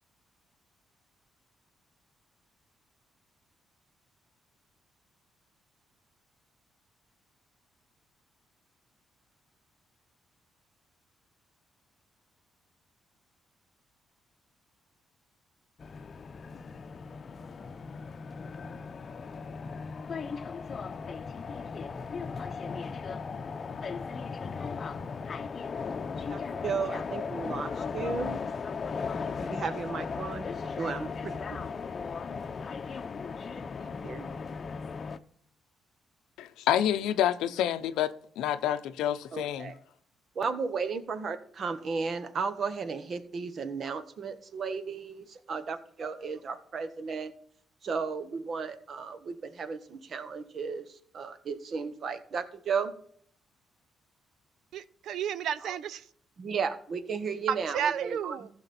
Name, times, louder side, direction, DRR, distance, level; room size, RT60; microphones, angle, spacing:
sound 1, 15.8-35.2, left 5 dB, 45° left, 0.7 m, -37 dB
voice 1, 26.3-28.4 29.4-31.6 33.8-34.3 39.3-39.7 40.3-47.3 47.8-52.9 55.6-55.7 56.4-58.5, right 5 dB, 55° right, 1.2 m, -34 dB
voice 2, 36.4-39.7, left 11 dB, 90° left, 0.7 m, -28 dB
voice 3, 54.7-56.1 57.5-58.5, right 9 dB, 75° right, 0.6 m, -32 dB
14.5 x 5.9 x 4.3 m
cardioid pair, 90°, 0 cm